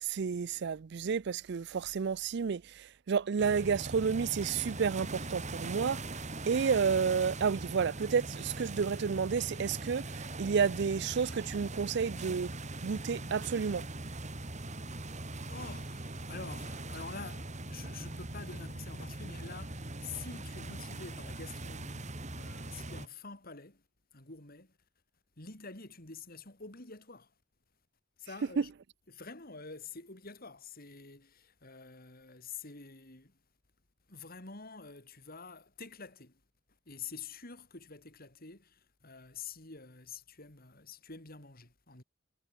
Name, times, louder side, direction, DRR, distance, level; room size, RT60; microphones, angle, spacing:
voice 1, 0.0-6.0 6.5-12.5 12.8-13.8 28.6-28.7, right 6 dB, 60° right, 0.4 m, -31 dB
sound 1, 3.4-23.1, right 2 dB, 35° right, 2.8 m, -41 dB
voice 2, 14.5-14.9 15.5-23.8 24.1-24.7 25.4-27.3 28.2-28.7 29.1-33.4 34.1-36.4 36.9-42.0, left 4 dB, 50° left, 4.5 m, -48 dB
head